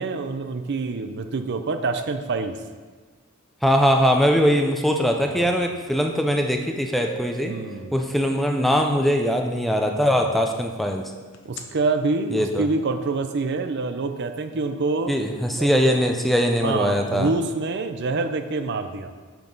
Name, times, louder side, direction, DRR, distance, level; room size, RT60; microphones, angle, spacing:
voice 1, 0.0-2.6 5.2-5.5 7.4-8.0 10.2-10.4 11.4-15.2 15.6-15.7 16.6-19.1, right 3 dB, 50° right, 8 dB, 0.5 m, -26 dB
voice 2, 3.6-7.5 7.9-11.1 12.3-12.6 15.1-17.3, equal, ahead, 3 dB, 0.5 m, -21 dB
sound 1, 6.4-6.5 7.0-8.7 11.3-11.6, equal, 55° left, 0.8 m, -40 dB
6.7 x 6.0 x 5.3 m, 1.4 s
head